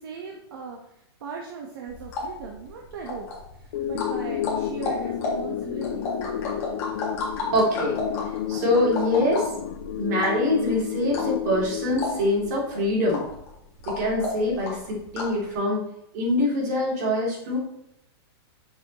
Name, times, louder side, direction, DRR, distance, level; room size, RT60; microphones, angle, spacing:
voice 1, 0.0-6.1, right 6 dB, 60° right, -1 dB, 1.4 m, -39 dB
sound 1, 1.9-15.5, left 3 dB, 20° left, 1.9 m, -34 dB
sound 2, 3.7-12.8, left 11 dB, 40° left, 0.5 m, -31 dB
voice 2, 7.5-9.5 10.0-13.2 13.9-15.9 16.1-17.6, left 1 dB, 40° right, -4 dB, 3.4 m, -24 dB
10.5 x 6.3 x 3.1 m, 0.80 s
supercardioid pair, 180°, 14 cm